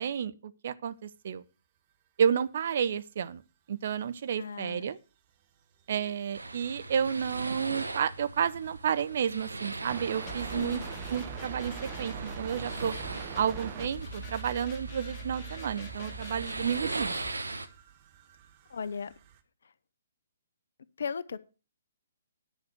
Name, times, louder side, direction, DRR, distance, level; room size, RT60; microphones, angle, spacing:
voice 1, 0.0-1.4 2.2-3.4 3.7-5.0 5.9-10.8 11.1-12.9 13.3-17.2, right 8 dB, 50° right, 0.6 m, -31 dB
voice 2, 4.4-4.9 10.5-10.9 18.7-19.1 21.0-21.4, left 6 dB, 60° left, 0.7 m, -36 dB
sound 1, 5.8-5.9 9.0-9.1 9.9-19.4, right 9 dB, 35° right, 1.2 m, -46 dB
sound 2, 6.3-17.7, right 2 dB, 80° right, 1.1 m, -40 dB
sound 3, 10.3-17.3, right 1 dB, 25° left, 2.1 m, -43 dB
10.0 x 6.0 x 6.6 m
figure-of-eight pair, 130°, 0 cm